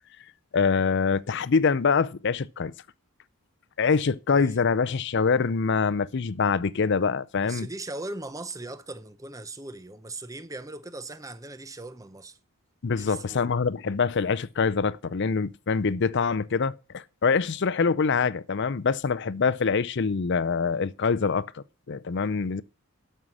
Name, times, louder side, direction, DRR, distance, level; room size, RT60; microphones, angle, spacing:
voice 1, 0.5-2.7 3.8-7.7 12.8-22.6, left 5 dB, 55° left, 0.5 m, -25 dB
voice 2, 4.3-4.6 7.3-12.4 12.9-13.5, right 2 dB, 15° right, 0.7 m, -39 dB
12.5 x 5.6 x 6.1 m
head